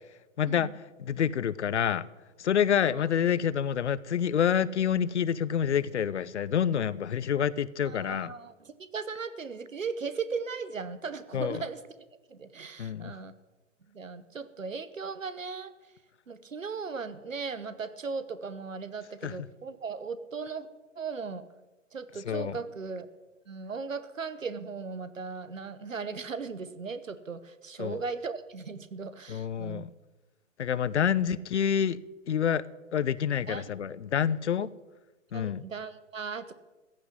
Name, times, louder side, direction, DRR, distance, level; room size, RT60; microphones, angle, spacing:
voice 1, 0.4-0.7 1.0-2.1 2.4-8.3 11.3-11.6 12.8-13.1 19.2-19.4 22.2-22.6 27.8-28.0 29.3-29.9 30.6-32.0 32.3-32.6 32.9-34.7 35.3-35.6, left 8 dB, 60° left, 19 dB, 0.6 m, -27 dB
voice 2, 7.8-11.8 12.3-13.3 13.9-15.7 16.3-20.7 21.0-21.4 21.9-23.1 23.5-29.8 31.0-31.1 33.5-33.6 35.3-36.5, right 5 dB, 75° right, 14 dB, 1.1 m, -37 dB
15.0 x 5.9 x 9.5 m, 1.1 s
figure-of-eight pair, 115°, 39 cm